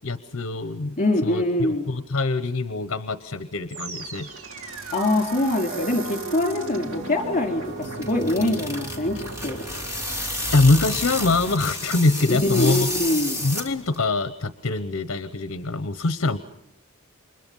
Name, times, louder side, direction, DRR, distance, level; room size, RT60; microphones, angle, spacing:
voice 1, 0.0-4.3 10.5-12.9 13.4-16.4, left 3 dB, 60° left, 10 dB, 0.9 m, -24 dB
voice 2, 1.0-1.9 4.9-9.6 12.3-13.4, left 1 dB, 35° left, 4 dB, 4.3 m, -24 dB
sound 1, 3.7-12.8, right 3 dB, 70° right, 2.2 m, -37 dB
sound 2, 7.7-14.0, left 1 dB, 15° right, 3.2 m, -31 dB
29.0 x 24.5 x 5.5 m, 0.77 s
head